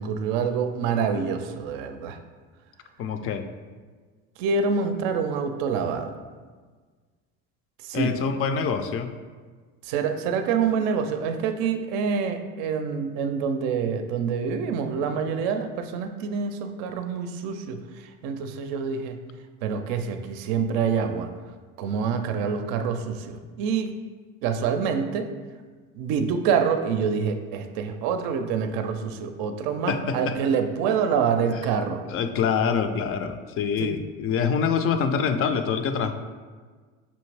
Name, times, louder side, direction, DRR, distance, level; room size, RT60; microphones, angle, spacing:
voice 1, 0.0-2.2 4.4-6.1 7.8-8.1 9.8-19.2 19.6-21.3 21.8-23.9 24.4-25.3 25.9-32.0 33.8-33.9, right 6 dB, 65° right, 7 dB, 0.5 m, -26 dB
voice 2, 3.0-3.5 7.9-9.1 29.9-30.4 32.1-36.1, left 6 dB, 40° left, 8 dB, 0.4 m, -25 dB
5.4 x 2.5 x 3.2 m, 1.5 s
supercardioid pair, 90°, 37 cm